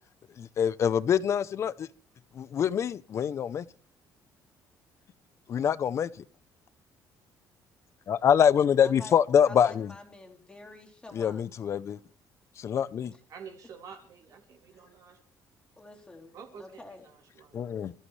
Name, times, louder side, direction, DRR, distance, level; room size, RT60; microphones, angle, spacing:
voice 1, 0.4-1.9 2.3-3.6 5.5-6.1 8.1-9.9 11.1-12.0 12.6-13.1 17.5-17.9, left 8 dB, 40° left, 17 dB, 0.7 m, -25 dB
voice 2, 5.8-6.2 8.8-9.2 9.4-11.4 13.1-13.2 14.7-14.8 15.8-17.1, left 2 dB, 15° left, 1 dB, 3.3 m, -48 dB
voice 3, 13.3-15.2 16.3-17.6, right 6 dB, 55° right, 2 dB, 4.1 m, -48 dB
28.0 x 14.5 x 3.3 m, 0.42 s
cardioid pair, 155°, 7 cm